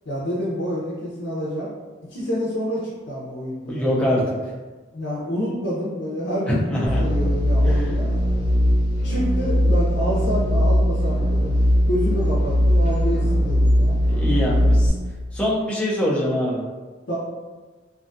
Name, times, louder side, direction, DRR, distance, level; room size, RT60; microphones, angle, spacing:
voice 1, 0.1-1.7 2.1-3.9 4.9-8.1 9.0-11.6 11.9-14.0 17.1-17.2, equal, 75° left, -7 dB, 0.5 m, -28 dB
voice 2, 3.7-4.3 6.5-7.0 7.7-7.9 14.0-14.9 15.3-16.6, equal, 5° left, -7 dB, 0.5 m, -23 dB
sound 1, 6.8-14.9, equal, 40° left, 0.9 m, -19 dB
2.5 x 2.3 x 2.5 m, 1.3 s
head